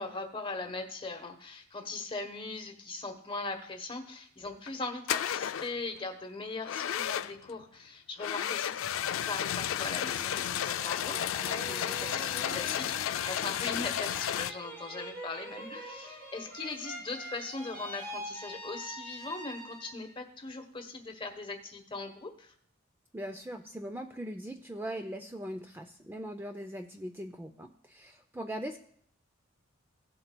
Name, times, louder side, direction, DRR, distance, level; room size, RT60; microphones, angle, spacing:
voice 1, 0.0-8.9 9.3-22.5, left 3 dB, 25° left, 6 dB, 1.0 m, -40 dB
sound 1, 4.5-4.7 5.1-5.8 6.6-7.5 8.2-14.5, left 11 dB, 70° left, 0.3 m, -33 dB
sound 2, 10.3-20.1 20.5-21.2, right 1 dB, 85° right, 3.8 m, -44 dB
voice 2, 23.1-28.8, equal, 10° right, 5 dB, 0.4 m, -40 dB
16.0 x 7.7 x 2.2 m, 0.62 s
head